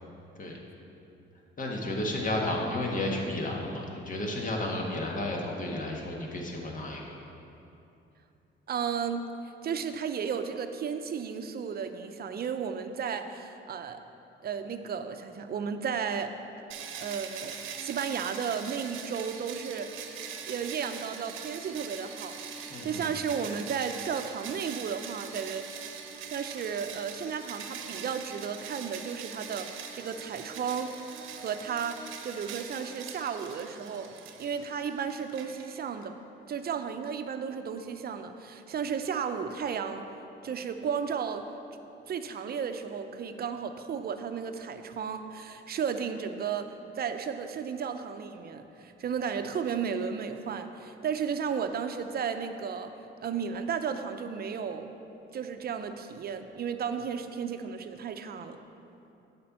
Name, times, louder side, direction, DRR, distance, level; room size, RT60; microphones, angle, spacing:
voice 1, 1.6-7.1 22.7-23.1, left 1 dB, 40° left, 0 dB, 1.6 m, -32 dB
voice 2, 8.7-9.3 9.6-14.0 14.4-16.4 16.9-19.9 20.5-25.8 26.3-30.9 31.4-34.1 34.4-36.2 36.5-40.1 40.4-41.5 42.1-52.9 53.2-54.9 55.3-58.6, right 6 dB, 50° right, 8 dB, 0.6 m, -34 dB
sound 1, 16.7-36.0, right 7 dB, 85° right, 0.8 m, -42 dB
9.3 x 4.4 x 7.4 m, 2.8 s
cardioid pair, 90°, 20 cm